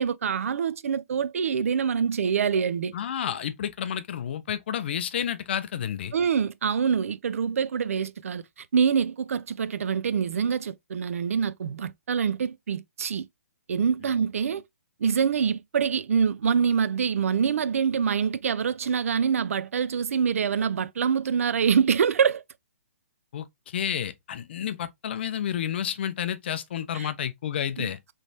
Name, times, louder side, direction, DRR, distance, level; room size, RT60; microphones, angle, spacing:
voice 1, 0.0-2.9 6.1-13.3 13.7-14.6 15.0-22.4 26.9-27.1 27.8-28.1, right 7 dB, 75° right, 0.4 m, -25 dB
voice 2, 2.9-6.1 23.3-28.0, left 9 dB, 50° left, 0.5 m, -30 dB
3.2 x 3.1 x 2.7 m
hypercardioid pair, 160°, 8 cm